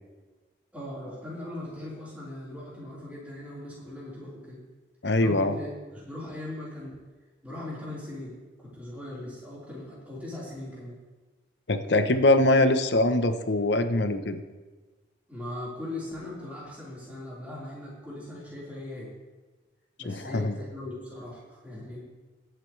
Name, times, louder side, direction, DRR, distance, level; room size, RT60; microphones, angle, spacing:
voice 1, 0.7-4.6 5.2-7.0 7.4-11.0 15.3-19.1 20.0-22.0, left 1 dB, 10° right, -8 dB, 4.2 m, -39 dB
voice 2, 5.0-5.5 11.7-14.4 20.0-20.5, left 2 dB, 75° left, 9 dB, 0.9 m, -23 dB
21.0 x 8.0 x 3.3 m, 1.3 s
head